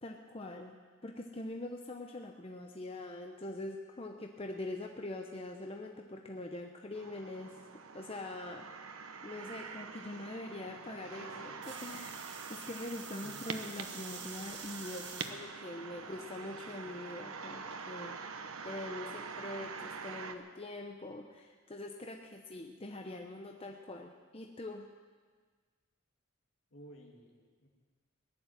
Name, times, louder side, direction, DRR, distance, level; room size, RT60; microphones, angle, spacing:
voice 1, 0.0-0.7 1.0-7.7 7.9-12.2 12.5-24.9, left 2 dB, 25° left, 3 dB, 0.8 m, -44 dB
sound 1, 6.9-20.4, right 5 dB, 90° right, 1.0 m, -45 dB
sound 2, 11.6-15.3 16.0-16.4 17.7-17.8, right 6 dB, 55° right, 1.8 m, -47 dB
voice 2, 15.9-16.3 26.7-27.7, equal, 65° left, 0 dB, 2.6 m, -54 dB
17.5 x 11.0 x 7.4 m, 1.6 s
head